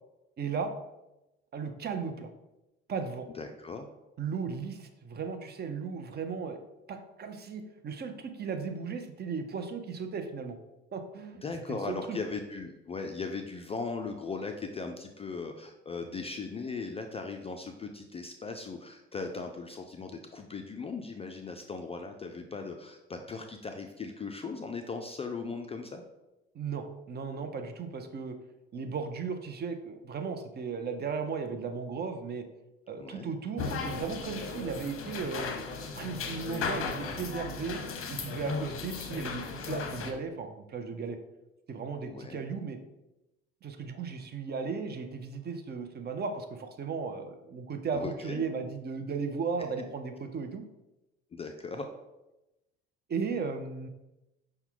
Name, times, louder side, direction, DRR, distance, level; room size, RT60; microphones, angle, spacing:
voice 1, 0.4-0.7 1.5-2.3 2.9-3.3 4.2-6.6 6.9-10.6 10.9-11.4 11.7-12.2 26.5-28.3 28.7-32.4 32.9-35.5 36.0-37.8 38.1-41.2 41.7-42.8 43.6-50.6 53.1-53.9, right 5 dB, 30° right, 7 dB, 0.6 m, -36 dB
voice 2, 3.4-3.9 11.4-26.0 33.0-33.3 42.0-42.4 47.9-48.5 51.3-51.9, left 4 dB, 20° left, 5 dB, 0.3 m, -38 dB
sound 1, 33.6-40.1, left 4 dB, 45° left, 0.8 m, -36 dB
5.6 x 2.2 x 3.7 m, 0.97 s
hypercardioid pair, 65°, 32 cm